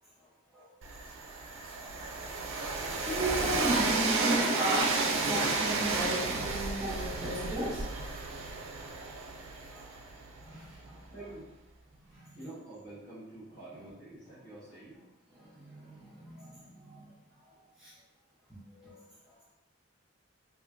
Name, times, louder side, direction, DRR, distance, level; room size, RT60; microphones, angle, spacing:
voice 1, 0.5-1.0 2.0-2.1 3.0-7.8 9.7-9.8 10.4-11.0 12.1-12.4 15.4-17.1 17.8-17.9 18.5-19.0, right 1 dB, 5° right, -9 dB, 0.6 m, -36 dB
Train, 0.8-10.7, right 3 dB, 75° right, 0.4 m, -32 dB
voice 2, 9.7-10.7 11.1-11.5 12.1-15.0, right 2 dB, 50° left, -10 dB, 1.5 m, -49 dB
3.0 x 2.4 x 2.5 m, 1.0 s
head